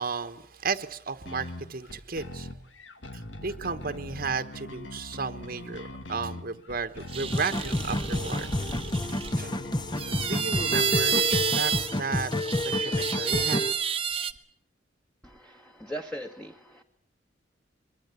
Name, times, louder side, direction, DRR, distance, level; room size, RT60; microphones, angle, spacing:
voice 1, 0.0-2.5 3.1-8.5 9.4-9.5 10.0-13.6, right 4 dB, 50° right, 9 dB, 1.2 m, -34 dB
sound 1, 1.3-10.9, left 1 dB, 80° left, 2.0 m, -42 dB
sound 2, 7.1-9.3 10.0-12.0 12.3-14.3, right 7 dB, 30° right, 1.1 m, -30 dB
sound 3, 7.3-13.7, left 1 dB, 25° left, 1.1 m, -29 dB
voice 2, 15.2-16.8, equal, 5° left, 4 dB, 1.4 m, -39 dB
23.0 x 22.5 x 8.3 m, 0.63 s
head